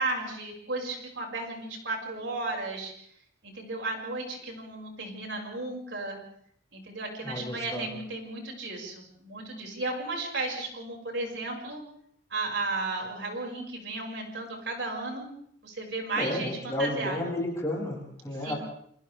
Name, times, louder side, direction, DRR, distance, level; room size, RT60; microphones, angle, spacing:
voice 1, 0.0-2.9 3.4-6.2 6.7-11.8 12.3-15.3 15.6-17.2 18.4-18.5, right 2 dB, 75° right, 1 dB, 5.7 m, -34 dB
voice 2, 7.2-7.9 16.2-18.5, left 1 dB, 15° left, -3 dB, 7.1 m, -32 dB
29.5 x 26.0 x 3.4 m, 0.66 s
head